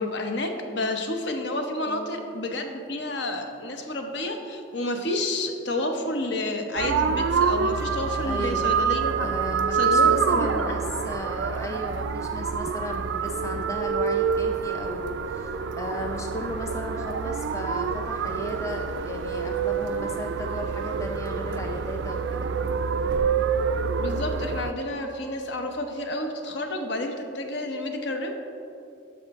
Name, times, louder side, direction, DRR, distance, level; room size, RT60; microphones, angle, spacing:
voice 1, 0.0-9.3 9.7-10.7 24.0-28.4, left 1 dB, 65° left, 5 dB, 0.8 m, -30 dB
voice 2, 1.9-2.2 8.2-8.8 9.2-22.5, equal, 15° left, 2 dB, 0.4 m, -35 dB
sound 1, 6.8-24.7, right 6 dB, 75° right, 0.3 m, -26 dB
12.0 x 5.0 x 3.5 m, 2.6 s
head